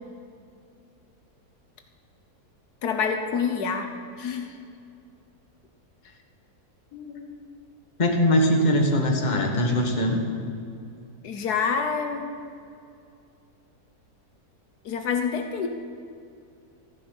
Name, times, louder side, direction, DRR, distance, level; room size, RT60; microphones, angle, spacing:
voice 1, 2.8-3.9 4.2-4.6 6.9-7.5 11.2-12.3 14.8-15.7, left 6 dB, 80° left, 5 dB, 1.5 m, -27 dB
voice 2, 8.0-10.2, left 1 dB, 30° left, 2 dB, 1.4 m, -21 dB
14.0 x 10.0 x 5.6 m, 2.5 s
omnidirectional pair, 1.7 m